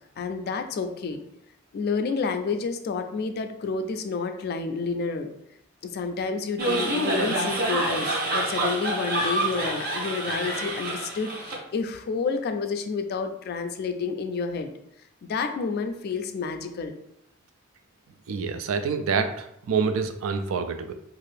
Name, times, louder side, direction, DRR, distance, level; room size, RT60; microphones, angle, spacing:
voice 1, 0.2-1.2 1.7-5.3 5.8-14.7 15.3-16.9, left 4 dB, 50° left, 7 dB, 0.3 m, -29 dB
sound 1, 6.6-11.5, right 1 dB, 45° right, 0.7 m, -27 dB
voice 2, 18.3-20.9, right 5 dB, 75° right, 8 dB, 0.3 m, -27 dB
2.6 x 2.4 x 3.3 m, 0.76 s
head